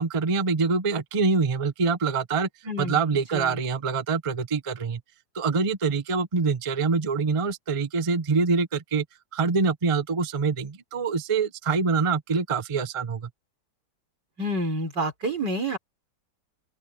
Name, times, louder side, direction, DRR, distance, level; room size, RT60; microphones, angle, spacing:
voice 1, 0.0-2.5 2.8-5.0 5.3-9.0 9.3-13.3, right 4 dB, 30° right, 0.7 m, -25 dB
voice 2, 2.6-3.0 3.3-3.6 14.4-15.8, right 1 dB, 85° right, 5.8 m, -28 dB
open air
omnidirectional pair, 1.8 m